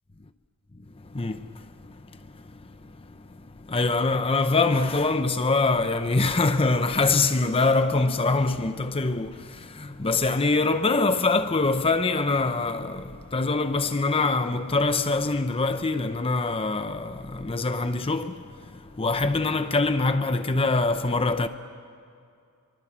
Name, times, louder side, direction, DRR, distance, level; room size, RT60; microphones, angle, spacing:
voice 1, 1.0-21.5, left 3 dB, 25° left, 0.7 m, -24 dB
25.0 x 24.0 x 7.4 m
head